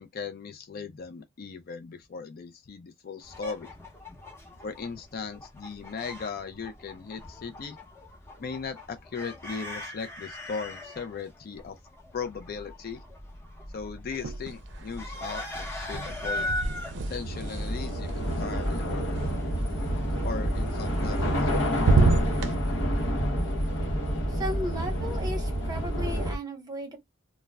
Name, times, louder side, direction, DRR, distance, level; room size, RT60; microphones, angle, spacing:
voice 1, 0.0-3.7 4.6-7.8 8.4-11.8 12.1-13.0 13.7-16.5 17.0-19.2 20.2-22.2, left 5 dB, 50° left, 0.4 m, -38 dB
sound 1, 3.2-20.8, left 1 dB, 15° left, 0.8 m, -41 dB
Train / Subway metro underground, 13.0-13.1 13.4-26.4, equal, 65° left, 0.9 m, -29 dB
sound 2, 14.1-14.9 15.1-19.2 20.8-21.5 21.7-22.5, right 3 dB, 65° right, 0.5 m, -28 dB
voice 2, 24.3-27.0, equal, 20° right, 0.9 m, -35 dB
2.3 x 2.1 x 3.2 m
head